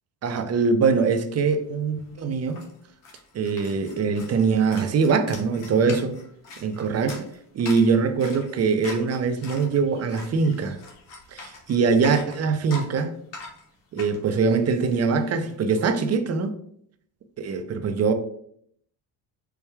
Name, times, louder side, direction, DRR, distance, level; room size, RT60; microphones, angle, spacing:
voice 1, 0.2-2.7 3.3-6.2 6.6-7.1 7.5-10.8 11.3-13.1 13.9-16.5 17.4-18.1, right 5 dB, 35° right, 0.5 m, -23 dB
sound 1, 1.7-1.8 2.0-15.8, left 3 dB, 90° left, 1.2 m, -43 dB
4.6 x 2.2 x 3.3 m
cardioid pair, 100°, 43 cm